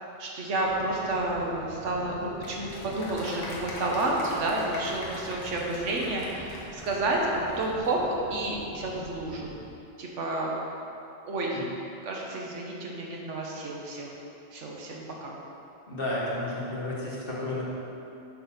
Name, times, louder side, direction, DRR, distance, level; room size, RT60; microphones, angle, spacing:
voice 1, 0.2-9.5 10.0-10.5 11.3-11.6 12.0-14.1 14.5-15.3, right 2 dB, 75° right, -2 dB, 1.3 m, -30 dB
sound 1, 0.6-9.7, right 1 dB, 20° right, 1.0 m, -47 dB
Applause, 2.4-7.9, left 2 dB, 85° left, 1.4 m, -42 dB
voice 2, 15.9-17.6, left 1 dB, 50° left, -6 dB, 1.5 m, -32 dB
6.8 x 4.0 x 5.6 m, 2.8 s
omnidirectional pair, 1.2 m